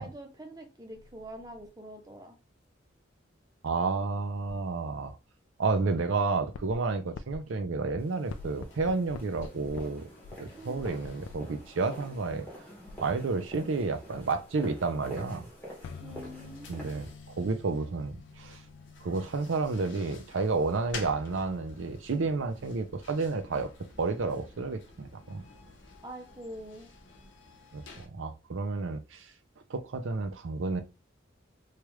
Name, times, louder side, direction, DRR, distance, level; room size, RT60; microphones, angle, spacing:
voice 1, 0.0-2.4 10.5-10.8 16.0-16.9 26.0-26.9, right 1 dB, 20° right, 0.6 m, -45 dB
sound 1, 0.9-1.7 4.4-4.8 5.9-7.6 7.9-8.0 8.3-9.8 10.2-11.7 12.0-19.7, left 4 dB, 85° left, 0.3 m, -47 dB
voice 2, 3.6-5.1 5.6-10.1 10.4-12.5 13.0-15.5 16.7-18.6 19.0-23.7 24.0-25.4 27.7-29.3 29.7-30.8, right 3 dB, 75° right, 0.5 m, -31 dB
sound 2, 8.0-17.2, equal, 10° left, 1.0 m, -48 dB
sound 3, 8.2-28.1, left 3 dB, 70° left, 0.7 m, -52 dB
3.1 x 2.4 x 3.1 m
head